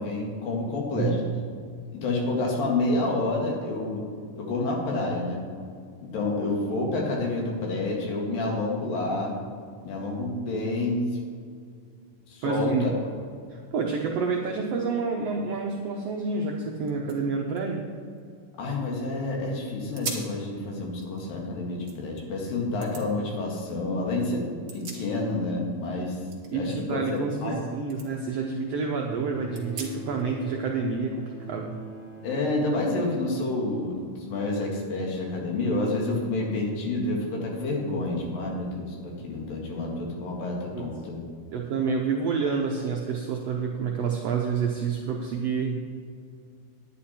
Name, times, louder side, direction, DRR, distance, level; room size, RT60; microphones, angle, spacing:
voice 1, 0.0-1.2 1.9-4.0 4.4-5.4 6.0-9.3 9.8-11.1 12.3-12.9 18.6-26.2 26.5-27.6 32.2-41.2, left 2 dB, 85° left, -1 dB, 3.6 m, -29 dB
voice 2, 1.0-1.4 12.4-12.9 13.5-17.8 26.5-31.8 40.7-40.8 41.5-45.8, right 5 dB, 80° right, 0 dB, 1.4 m, -28 dB
sound 1, 16.5-16.6 16.8-19.0 19.4-19.5 19.9-20.4 20.8-22.2 22.8-23.1 24.4-25.5 25.8-27.6 27.9-28.1 28.6-28.7 29.5-30.2, right 4 dB, 50° right, 1.0 m, -41 dB
Bowed string instrument, 29.0-34.5 35.6-35.7, right 1 dB, 45° left, 3.8 m, -43 dB
10.5 x 10.0 x 4.3 m, 2.2 s
omnidirectional pair, 3.9 m